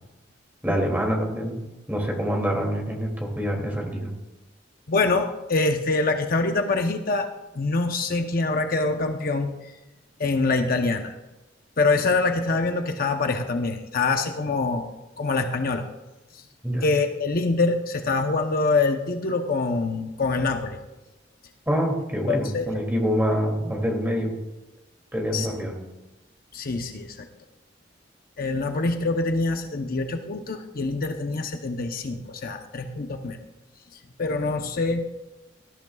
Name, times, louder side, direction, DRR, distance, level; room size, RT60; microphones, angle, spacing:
voice 1, 0.6-1.6 1.9-4.1 16.6-16.8 21.7-24.4 25.1-25.8, equal, 10° right, 0 dB, 2.6 m, -26 dB
voice 2, 4.9-7.3 7.5-9.7 10.2-11.2 11.8-14.8 15.2-15.9 16.3-16.4 16.8-20.8 22.3-22.8 25.3-25.5 26.5-27.3 28.4-33.4 34.2-35.0, left 3 dB, 50° left, 5 dB, 0.8 m, -25 dB
18.0 x 13.5 x 2.4 m, 1.0 s
head